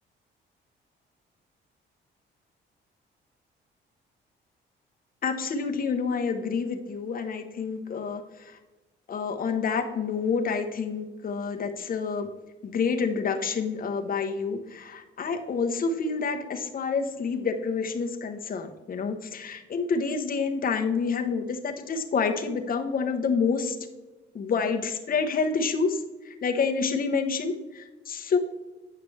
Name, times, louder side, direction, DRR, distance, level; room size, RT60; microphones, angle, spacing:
voice 1, 5.2-8.2 9.1-12.3 12.6-23.8 24.3-26.0 26.4-28.4, left 5 dB, 45° left, 5 dB, 0.9 m, -28 dB
8.6 x 5.8 x 3.3 m, 1.2 s
cardioid pair, 90°, 20 cm